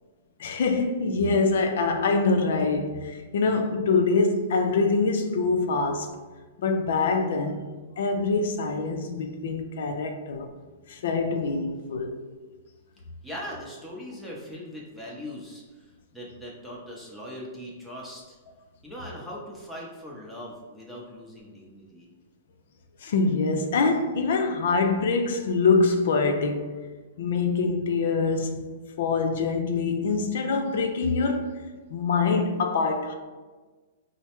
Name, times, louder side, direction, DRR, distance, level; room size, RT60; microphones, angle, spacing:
voice 1, 0.4-6.1 6.6-7.6 8.0-10.5 10.9-12.2 23.0-26.7 27.2-28.7 29.0-31.6 31.9-33.1, left 4 dB, 65° left, 0.4 m, -24 dB
voice 2, 13.2-15.8 16.1-18.4 18.8-22.1, equal, ahead, 0.7 m, -40 dB
4.5 x 2.1 x 2.9 m
hypercardioid pair, 155°, 0 cm